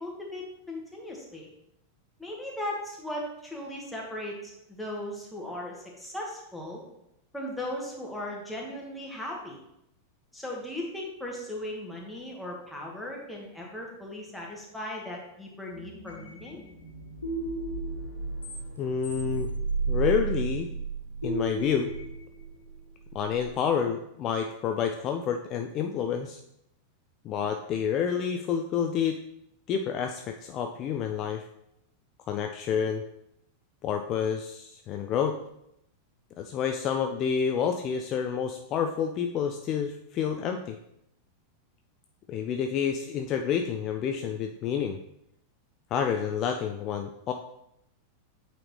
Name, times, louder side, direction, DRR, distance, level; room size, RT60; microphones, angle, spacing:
voice 1, 0.0-1.5 2.2-6.8 7.3-9.6 10.3-16.6, left 1 dB, 5° left, -3 dB, 1.7 m, -37 dB
sound 1, 15.7-23.5, right 4 dB, 80° left, 1.4 m, -33 dB
voice 2, 18.8-19.5 19.9-20.7 21.2-21.9 23.1-26.4 27.2-29.2 29.7-31.4 32.3-33.0 33.8-35.4 36.4-40.8 42.3-45.0 45.9-47.3, left 7 dB, 35° left, 5 dB, 0.4 m, -29 dB
8.4 x 4.2 x 3.2 m, 0.80 s
figure-of-eight pair, 90°, 0 cm